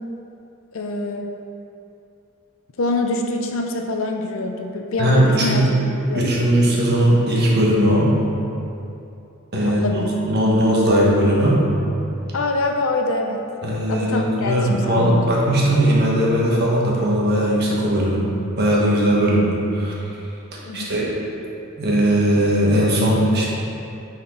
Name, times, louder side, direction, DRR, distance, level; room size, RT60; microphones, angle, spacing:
voice 1, 0.7-1.3 2.8-6.5 9.6-10.1 12.3-13.4 13.9-15.3 20.7-21.1, left 2 dB, 65° left, 3 dB, 0.6 m, -25 dB
voice 2, 5.0-5.7 6.1-8.1 9.5-9.8 10.2-11.6 13.6-18.3 18.6-19.9 20.7-21.1 21.8-23.5, equal, 50° right, -4 dB, 1.4 m, -18 dB
8.7 x 4.4 x 3.9 m, 2.7 s
head